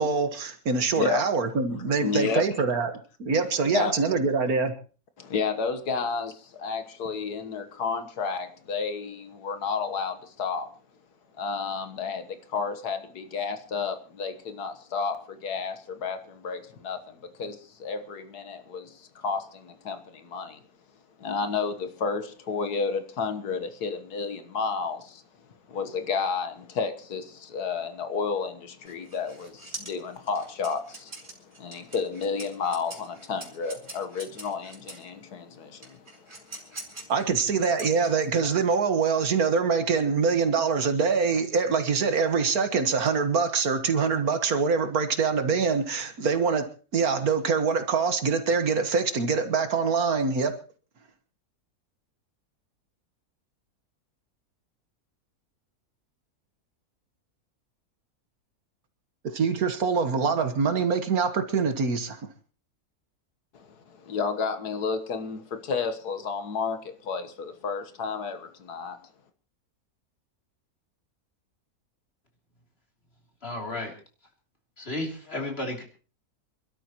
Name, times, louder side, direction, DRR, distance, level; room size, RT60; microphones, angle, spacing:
voice 1, 0.0-2.9 3.2-4.7 37.1-46.7 46.9-50.5 59.3-62.2, right 5 dB, 70° right, 1.9 m, -24 dB
voice 2, 2.0-2.4 3.7-4.0 5.2-10.7 11.4-20.6 21.2-25.2 25.7-37.1 63.5-69.0, left 5 dB, 90° left, 1.8 m, -31 dB
sound 1, 28.8-35.1 35.8-38.4, right 2 dB, 30° right, 3.3 m, -43 dB
voice 3, 73.4-73.9 74.8-75.8, left 1 dB, 40° left, 3.4 m, -33 dB
27.0 x 12.5 x 3.0 m
omnidirectional pair, 1.6 m